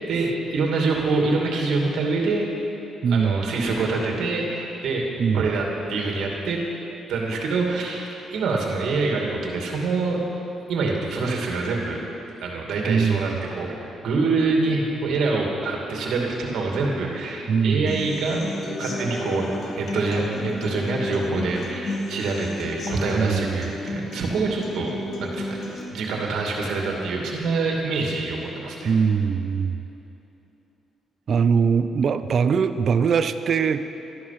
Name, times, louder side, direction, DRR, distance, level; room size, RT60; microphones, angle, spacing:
voice 1, 0.1-2.5 3.1-5.1 5.3-6.6 7.1-10.2 10.7-12.0 12.4-18.5 18.8-19.5 19.8-25.6 25.9-28.9, right 3 dB, 75° right, 0 dB, 2.4 m, -25 dB
voice 2, 3.0-3.5 5.2-5.6 12.9-13.4 17.5-17.9 23.2-23.6 28.8-29.8 31.3-33.8, right 6 dB, 55° right, 11 dB, 0.5 m, -21 dB
Human voice / Acoustic guitar, 17.9-25.8, left 2 dB, 50° left, 2.3 m, -32 dB
13.5 x 11.0 x 5.9 m, 2.9 s
cardioid pair, 90°, 0 cm